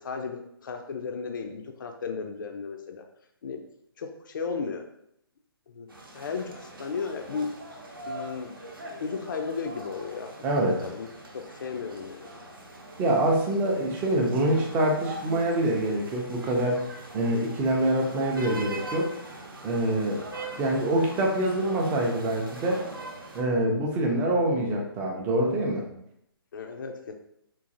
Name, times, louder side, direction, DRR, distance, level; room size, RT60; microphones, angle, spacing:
voice 1, 0.0-3.0 3.4-3.6 4.0-4.8 5.7-5.9 6.1-7.6 8.1-8.5 9.0-10.3 10.8-11.1 11.6-12.3 26.5-27.1, left 5 dB, 55° left, 4 dB, 0.4 m, -34 dB
sound 1, 5.9-23.4, right 2 dB, 65° right, 0.7 m, -42 dB
voice 2, 10.4-10.8 13.0-19.1 19.6-20.2 20.6-22.8 23.3-25.8, right 1 dB, 15° right, 0 dB, 0.4 m, -25 dB
3.8 x 2.5 x 2.5 m, 0.76 s
figure-of-eight pair, 135°, 13 cm